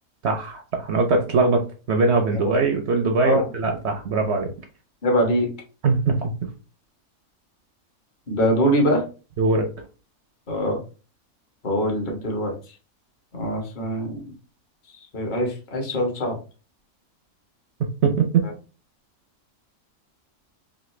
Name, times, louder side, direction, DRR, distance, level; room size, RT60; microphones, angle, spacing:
voice 1, 0.2-4.5 5.8-6.3 9.4-9.7 18.0-18.5, right 4 dB, 65° right, 3 dB, 0.7 m, -21 dB
voice 2, 5.0-5.5 8.3-9.0 10.5-10.8 11.6-12.5 13.3-14.2 15.1-16.3, equal, 40° left, 1 dB, 0.9 m, -23 dB
3.2 x 2.5 x 3.0 m, 0.35 s
omnidirectional pair, 1.5 m